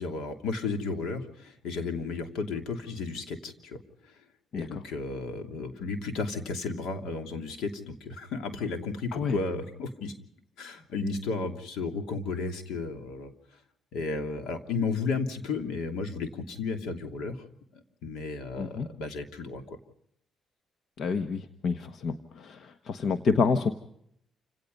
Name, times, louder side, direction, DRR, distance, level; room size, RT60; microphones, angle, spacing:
voice 1, 0.0-3.8 4.5-10.1 10.6-13.3 13.9-17.4 18.0-19.8, left 4 dB, 85° left, 5 dB, 2.9 m, -33 dB
voice 2, 18.5-18.9 21.0-23.7, left 5 dB, 65° left, 8 dB, 1.3 m, -28 dB
28.5 x 17.5 x 5.5 m, 0.72 s
cardioid pair, 90°, 0 cm